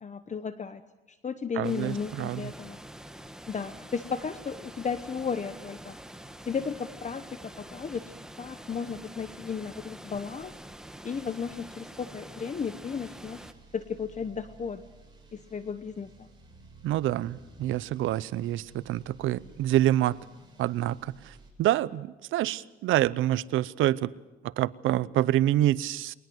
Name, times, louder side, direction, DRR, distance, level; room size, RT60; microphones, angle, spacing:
voice 1, 0.0-0.8 1.1-2.8 3.5-6.0 6.4-10.5 11.0-13.5 13.7-14.8 15.3-16.3, left 6 dB, 35° left, 11 dB, 1.0 m, -34 dB
sound 1, 1.6-13.5, right 1 dB, 5° right, 1.4 m, -46 dB
voice 2, 1.6-2.4 16.8-20.2 20.6-24.1 24.4-26.1, right 14 dB, 85° right, 19 dB, 0.7 m, -27 dB
sound 2, 13.2-21.5, right 2 dB, 20° right, 7.6 m, -54 dB
22.0 x 19.5 x 7.9 m, 1.0 s
cardioid pair, 90°, 20 cm